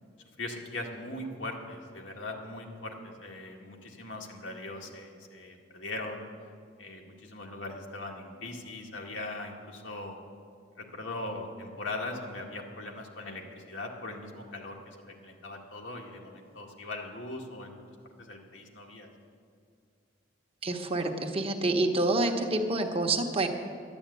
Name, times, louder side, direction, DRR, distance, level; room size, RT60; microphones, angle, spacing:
voice 1, 0.4-6.2 6.8-10.2 10.8-17.8 18.2-19.1, left 2 dB, 80° left, 0 dB, 1.9 m, -40 dB
voice 2, 20.6-23.5, right 2 dB, 30° right, 3 dB, 1.1 m, -27 dB
11.5 x 10.5 x 8.4 m, 2.2 s
head